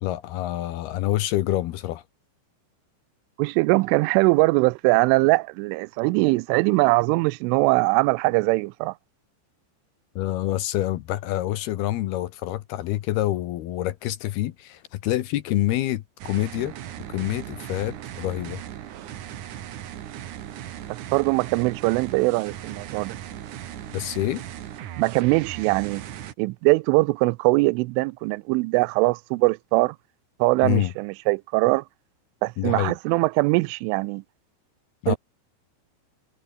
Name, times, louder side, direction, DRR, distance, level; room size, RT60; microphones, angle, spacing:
voice 1, 0.0-2.0 10.2-16.7 17.1-18.6 23.9-24.4 30.6-30.9 32.6-32.9 35.0-35.2, left 14 dB, 70° left, 2.5 m, -27 dB
voice 2, 3.4-8.9 20.9-23.2 25.0-26.0 26.4-30.0 30.4-31.8 32.4-34.2 35.1-35.2, right 24 dB, 90° right, 3.1 m, -21 dB
sound 1, 16.2-26.3, right 11 dB, 65° right, 2.0 m, -38 dB
omnidirectional pair, 5.5 m